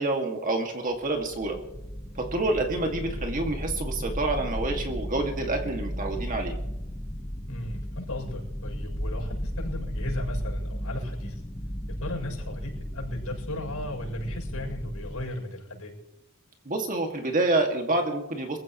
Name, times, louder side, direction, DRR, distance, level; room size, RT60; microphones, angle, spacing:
voice 1, 0.0-1.6 2.2-6.5 16.7-18.6, right 2 dB, 40° right, 3 dB, 2.2 m, -28 dB
sound 1, 1.0-15.2, equal, 15° left, 1.2 m, -34 dB
voice 2, 7.5-11.4 12.0-15.9, left 1 dB, 80° left, 0 dB, 7.2 m, -36 dB
25.5 x 15.5 x 3.2 m, 0.91 s
head